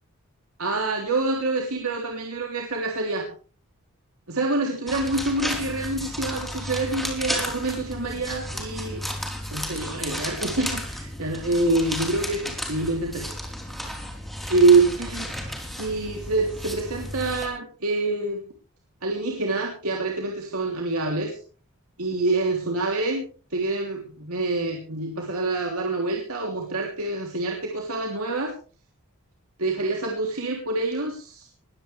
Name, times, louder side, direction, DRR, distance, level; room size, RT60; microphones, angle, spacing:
voice 1, 0.6-3.3 4.3-9.0 9.5-13.3 14.5-15.3 15.8-18.4 19.0-21.4 22.0-23.2 23.5-28.5 29.6-31.5, right 3 dB, 75° right, 1 dB, 3.3 m, -26 dB
sound 1, 4.9-17.5, equal, ahead, 4.1 m, -33 dB
21.0 x 16.0 x 3.4 m, 0.38 s
head